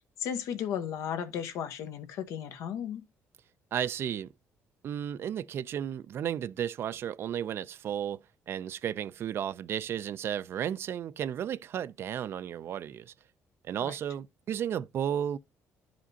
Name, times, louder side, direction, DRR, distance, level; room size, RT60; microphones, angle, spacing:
voice 1, 0.2-3.0 13.8-13.9, left 8 dB, 80° left, 1.0 m, -35 dB
voice 2, 3.7-4.3 4.8-8.2 8.5-13.1 13.6-15.4, right 9 dB, 50° right, 0.3 m, -33 dB
11.0 x 5.0 x 2.7 m
cardioid pair, 130°, 5 cm